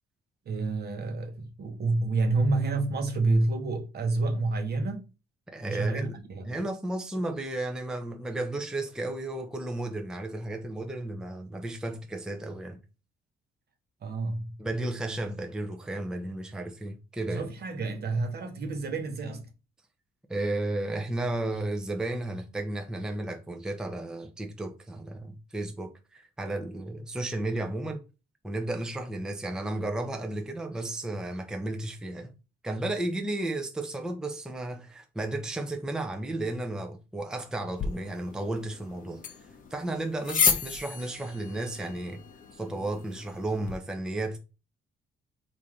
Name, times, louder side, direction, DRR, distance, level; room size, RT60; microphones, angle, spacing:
voice 1, 0.5-5.1 5.7-6.5 14.0-14.6 17.3-19.5, right 3 dB, 55° right, 0.9 m, -29 dB
voice 2, 5.5-6.1 6.5-12.8 14.6-17.5 20.3-28.0 28.4-32.3 32.6-39.4 39.7-42.2 42.5-44.4, right 2 dB, 5° right, 0.5 m, -33 dB
sound 1, 37.8-43.8, left 6 dB, 45° left, 0.6 m, -33 dB
3.2 x 2.6 x 3.6 m
cardioid pair, 90°, 20 cm